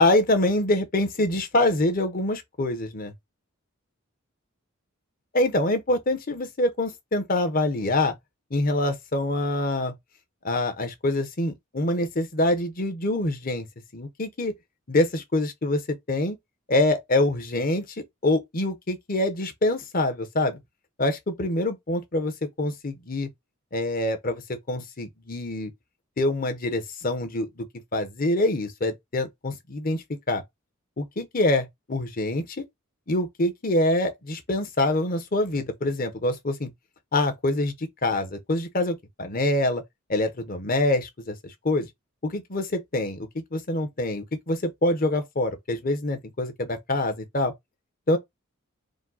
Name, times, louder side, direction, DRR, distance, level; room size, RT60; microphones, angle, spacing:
voice 1, 0.0-3.1 5.3-8.1 8.5-9.9 10.4-13.7 13.9-14.5 14.9-15.8 16.1-16.4 16.7-20.6 21.0-22.3 22.6-23.3 23.7-25.7 26.2-27.7 27.9-30.4 31.0-32.6 33.1-36.7 37.1-39.8 40.1-41.3 41.6-41.9 42.2-47.5 48.1-48.2, left 1 dB, 40° left, 0.9 m, -25 dB
4.9 x 2.2 x 4.0 m
head